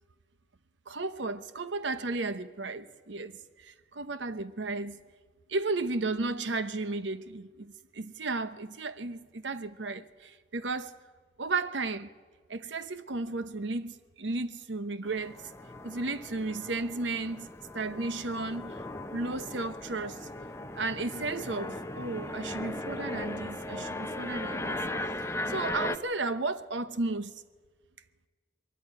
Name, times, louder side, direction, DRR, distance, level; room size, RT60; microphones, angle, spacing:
voice 1, 0.9-5.0 5.5-10.9 11.4-12.1 12.5-15.4 15.8-17.5 17.7-18.8 19.1-20.3 20.8-27.3, right 3 dB, 80° right, 0.9 m, -34 dB
sound 1, 15.1-26.0, left 1 dB, 15° left, 0.7 m, -38 dB
21.5 x 13.5 x 9.7 m
head